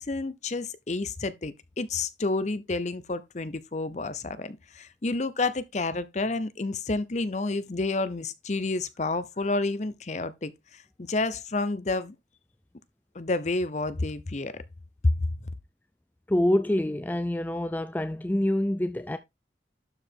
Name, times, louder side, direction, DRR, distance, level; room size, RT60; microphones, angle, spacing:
voice 1, 0.0-12.2 13.1-14.6 15.0-15.3, left 3 dB, 40° left, 0.7 m, -29 dB
voice 2, 16.3-19.2, left 1 dB, 10° left, 0.4 m, -26 dB
12.0 x 4.9 x 3.6 m
head